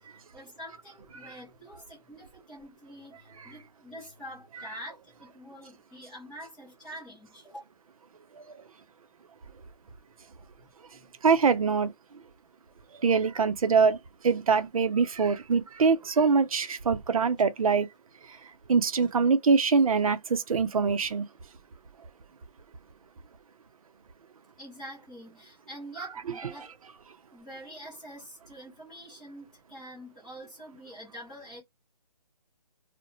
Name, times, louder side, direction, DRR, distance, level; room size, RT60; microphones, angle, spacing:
voice 1, 0.1-7.6 10.6-11.1 24.6-26.8 27.3-31.6, equal, 5° left, 0.4 m, -46 dB
voice 2, 11.2-11.9 13.0-14.0 14.2-17.9 18.7-21.3, right 5 dB, 60° right, 0.5 m, -23 dB
2.4 x 2.1 x 2.7 m
figure-of-eight pair, 150°, 21 cm